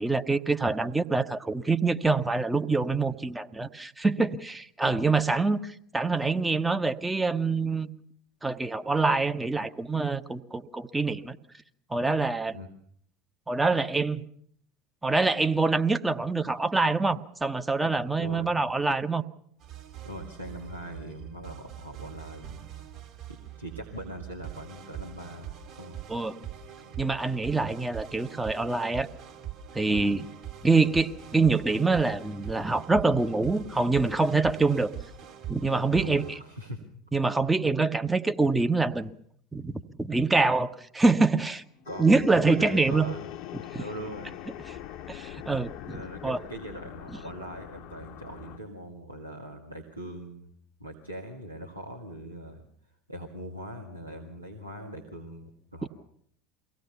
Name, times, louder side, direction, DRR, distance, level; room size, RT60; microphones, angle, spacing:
voice 1, 0.0-7.9 8.4-11.4 11.9-12.6 13.5-14.2 15.0-19.2 26.1-26.4 27.0-29.1 29.7-30.3 30.6-34.9 35.5-36.2 37.1-39.1 39.5-41.6 42.0-43.1 43.7-43.8 44.7-44.8 45.1-46.0 46.2-46.4, right 3 dB, 10° right, 10 dB, 1.0 m, -25 dB
voice 2, 18.2-18.5 20.0-22.6 23.6-26.0 35.7-36.8 41.9-42.0 42.4-43.3 43.8-44.4 45.9-50.5 50.8-52.6 53.1-55.9, equal, 90° right, -1 dB, 1.9 m, -41 dB
sound 1, 19.6-36.4, right 10 dB, 50° right, 3.4 m, -43 dB
sound 2, 41.1-48.6, left 11 dB, 50° left, 0.9 m, -42 dB
23.5 x 17.0 x 7.0 m, 0.65 s
figure-of-eight pair, 75°, 0 cm